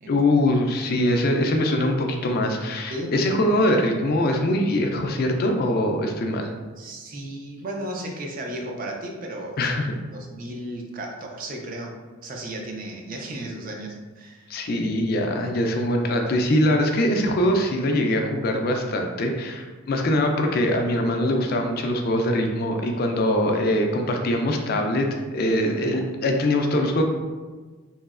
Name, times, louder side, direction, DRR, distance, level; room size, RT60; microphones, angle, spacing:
voice 1, 0.1-6.5 9.6-10.0 14.5-27.0, left 1 dB, 45° left, 3 dB, 0.3 m, -23 dB
voice 2, 6.8-9.7 10.1-11.9 12.2-14.6 25.9-26.1, right 1 dB, 40° right, 0 dB, 0.4 m, -34 dB
3.0 x 2.7 x 2.4 m, 1.4 s
head